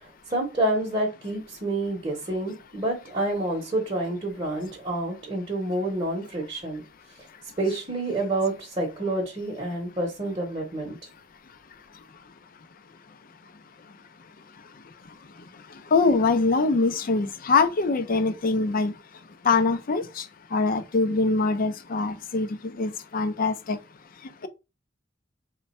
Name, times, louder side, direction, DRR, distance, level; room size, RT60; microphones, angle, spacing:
voice 1, 0.0-6.8 7.6-11.0, right 1 dB, 30° right, 0.8 m, -28 dB
voice 2, 15.9-18.9 19.4-20.2 20.5-22.5 22.8-23.8, left 3 dB, 50° left, 0.5 m, -23 dB
3.3 x 2.2 x 4.1 m
head